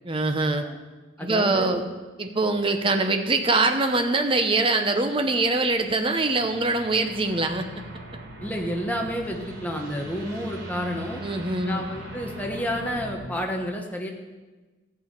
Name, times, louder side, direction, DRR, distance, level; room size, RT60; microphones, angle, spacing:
voice 1, 0.0-0.6 1.2-1.8 2.2-7.8 11.2-11.8, right 3 dB, 25° right, 6 dB, 0.9 m, -23 dB
voice 2, 1.2-1.8 8.4-11.2 11.6-14.1, equal, 10° left, 1 dB, 1.2 m, -30 dB
sound 1, 5.4-13.2, right 1 dB, 70° right, 3.7 m, -41 dB
14.5 x 7.2 x 5.7 m, 1.3 s
head